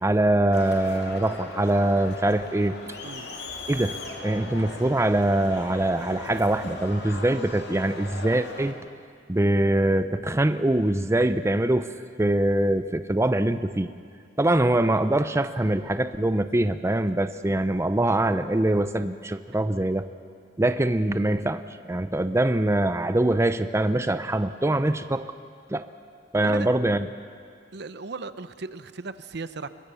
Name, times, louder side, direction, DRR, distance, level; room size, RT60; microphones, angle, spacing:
voice 1, 0.0-2.8 3.7-8.7 9.3-11.9 12.2-13.9 14.4-20.1 20.6-21.6 21.9-25.3 25.7-25.9 26.3-27.1, right 1 dB, 15° right, 11 dB, 0.5 m, -23 dB
Crowd, 0.5-8.7, left 2 dB, 65° left, 2.5 m, -38 dB
voice 2, 27.7-29.7, right 3 dB, 65° right, 13 dB, 0.8 m, -36 dB
23.0 x 22.0 x 6.9 m, 2.2 s
head